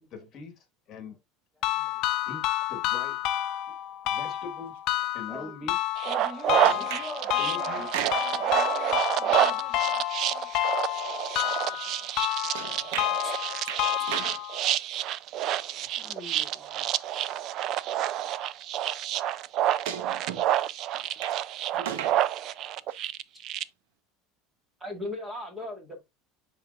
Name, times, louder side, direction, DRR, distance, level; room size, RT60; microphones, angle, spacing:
voice 1, 0.1-1.2 2.3-3.2 3.7-3.8 4.1-4.8 5.1-5.8 6.4-6.9 7.4-7.9, left 4 dB, 35° left, 1.7 m, -42 dB
sound 1, 1.6-14.6, left 15 dB, 50° left, 0.5 m, -30 dB
voice 2, 5.3-5.7 6.1-10.5 15.9-17.0, left 2 dB, 5° left, 0.8 m, -44 dB
sound 2, 6.0-23.6, right 12 dB, 40° right, 0.3 m, -29 dB
sound 3, 6.6-7.1 7.8-8.5 12.5-13.2 13.7-14.4 16.3-16.4 17.6-17.7 19.9-20.5 20.9-21.4 21.7-22.2 22.9-23.0, right 9 dB, 85° right, 0.9 m, -35 dB
voice 3, 12.9-13.3 21.7-21.9 24.8-26.0, left 1 dB, 10° right, 1.8 m, -38 dB
10.5 x 3.7 x 2.4 m
cardioid pair, 160°, 0 cm